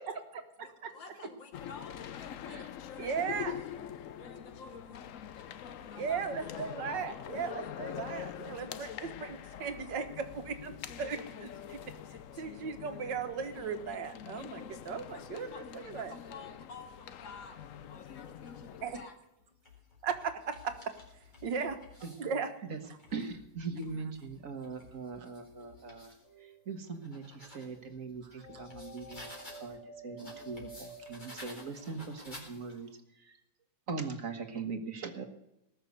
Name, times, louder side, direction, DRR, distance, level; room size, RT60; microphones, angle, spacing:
voice 1, 0.6-3.8 4.2-6.6 14.8-17.6 17.9-19.1, left 4 dB, 80° left, 5 dB, 2.8 m, -52 dB
sound 1, 1.5-19.1, left 9 dB, 60° left, 0.8 m, -44 dB
voice 2, 3.0-3.5 6.0-11.9 12.3-16.2 18.8-19.0 20.0-20.9 21.4-23.0 28.2-28.4, right 6 dB, 70° right, 8 dB, 2.0 m, -37 dB
sound 2, 17.9-18.7 19.4-22.3 22.8-26.2 26.7-29.8 30.2-32.9, left 2 dB, 25° left, 4.2 m, -53 dB
voice 3, 23.1-26.1 26.4-29.8 30.0-32.9 33.2-33.4 33.9-35.3, right 4 dB, 45° right, 7 dB, 1.7 m, -41 dB
sound 3, 26.2-27.0 28.4-32.2, right 1 dB, 45° left, 4.9 m, -51 dB
19.0 x 6.7 x 8.1 m, 0.88 s
omnidirectional pair, 2.0 m